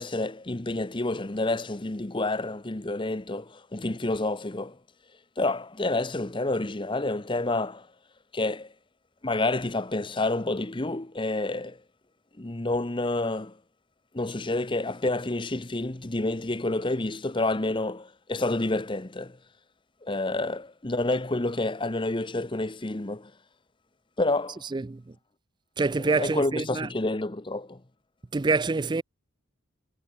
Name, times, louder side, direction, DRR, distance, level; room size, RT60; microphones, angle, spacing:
voice 1, 0.0-4.8 5.4-7.9 8.3-8.7 9.2-11.8 12.4-13.6 14.1-19.4 20.0-23.3 24.2-24.6 25.9-27.8, left 2 dB, 25° left, 0.9 m, -29 dB
voice 2, 24.7-25.0 25.8-26.9 28.3-29.0, right 3 dB, 20° right, 0.4 m, -26 dB
head